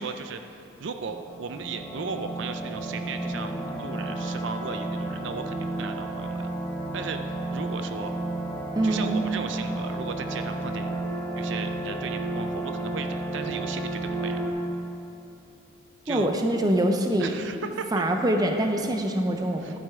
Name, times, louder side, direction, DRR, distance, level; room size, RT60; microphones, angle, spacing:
voice 1, 0.0-3.5 3.8-6.5 6.9-8.1 8.8-10.9 11.4-14.4 16.1-16.3 17.2-18.0 19.6-19.8, right 5 dB, 65° right, 7 dB, 0.4 m, -36 dB
sound 1, 1.1-14.5, right 2 dB, 10° left, 1.0 m, -32 dB
voice 2, 8.8-9.2 16.1-17.4 17.9-19.8, right 1 dB, 20° right, 3 dB, 0.6 m, -24 dB
12.0 x 8.8 x 3.6 m, 3.0 s
head